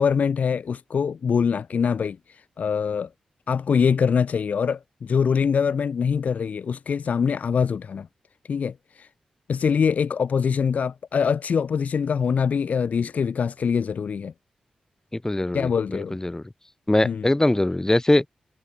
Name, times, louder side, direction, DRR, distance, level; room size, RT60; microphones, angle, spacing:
voice 1, 0.0-2.2 2.6-3.1 3.5-8.1 8.5-9.1 9.5-14.3 15.5-16.2 17.0-17.3, left 6 dB, 70° left, 0.6 m, -23 dB
voice 2, 15.1-16.4 16.9-18.2, left 1 dB, 20° left, 5.7 m, -22 dB
cardioid pair, 45°, 3 cm